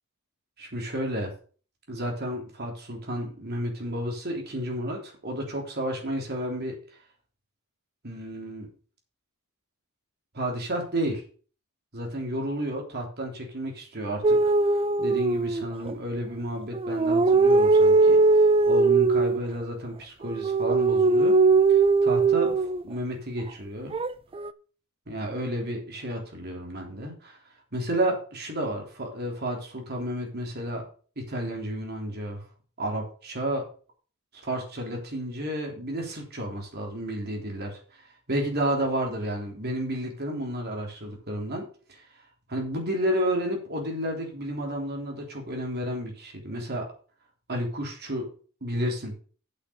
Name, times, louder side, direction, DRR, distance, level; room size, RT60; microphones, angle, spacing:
voice 1, 0.6-1.3 1.9-6.8 8.0-8.7 10.3-11.2 11.9-14.4 14.7-18.2 18.7-21.3 21.7-23.9 25.1-27.4 27.7-30.9 31.2-32.4 32.8-33.6 34.3-42.0 42.5-46.9 47.5-48.3 48.6-49.1, right 1 dB, 50° right, 1 dB, 3.4 m, -31 dB
sound 1, 14.2-15.9 16.7-19.4 20.2-22.8 23.9-24.5, right 3 dB, 25° right, 0.4 m, -20 dB
8.5 x 6.0 x 7.0 m, 0.41 s
head